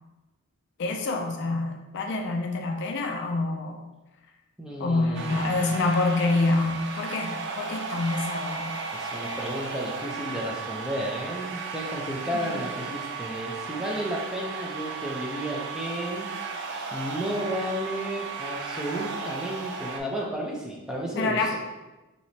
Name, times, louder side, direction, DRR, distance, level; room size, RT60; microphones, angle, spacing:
voice 1, 0.8-3.8 4.8-8.8 12.4-12.6 21.2-21.6, left 2 dB, 55° left, 3 dB, 0.4 m, -27 dB
voice 2, 4.6-5.7 8.9-16.3 16.9-21.6, equal, 5° right, -3 dB, 0.5 m, -33 dB
sound 1, 5.1-20.0, right 4 dB, 50° right, 0.4 m, -35 dB
4.7 x 2.9 x 2.7 m, 1.1 s
head